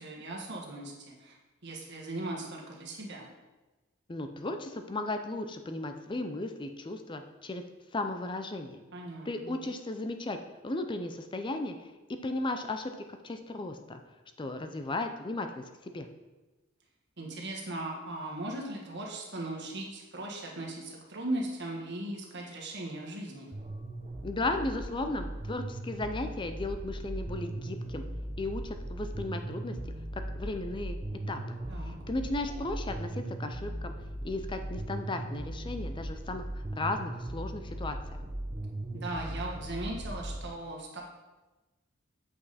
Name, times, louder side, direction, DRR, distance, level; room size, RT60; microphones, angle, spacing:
voice 1, 0.0-1.3 1.6-3.3 8.9-9.6 17.2-23.5 31.7-31.9 38.9-41.0, right 1 dB, 55° right, -1 dB, 1.5 m, -38 dB
voice 2, 4.1-7.6 7.9-8.8 9.2-10.4 10.6-11.7 12.2-12.9 13.2-14.0 14.4-16.1 24.2-28.0 28.4-29.8 30.1-31.0 31.3-31.6 31.9-33.9 34.2-36.4 36.7-38.0, left 2 dB, 20° left, 7 dB, 0.5 m, -35 dB
sound 1, 23.5-40.4, right 1 dB, 25° right, 0.7 m, -38 dB
8.4 x 5.3 x 4.1 m, 1.2 s
head